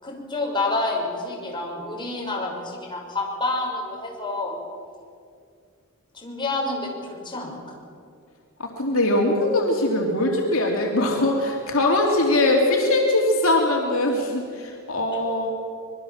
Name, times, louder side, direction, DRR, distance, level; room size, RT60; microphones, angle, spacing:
voice 1, 0.0-4.6 6.1-7.8, left 2 dB, 20° left, -2 dB, 6.2 m, -28 dB
voice 2, 8.6-15.5, left 1 dB, 65° left, 0 dB, 3.2 m, -21 dB
25.5 x 21.5 x 7.4 m, 2.2 s
head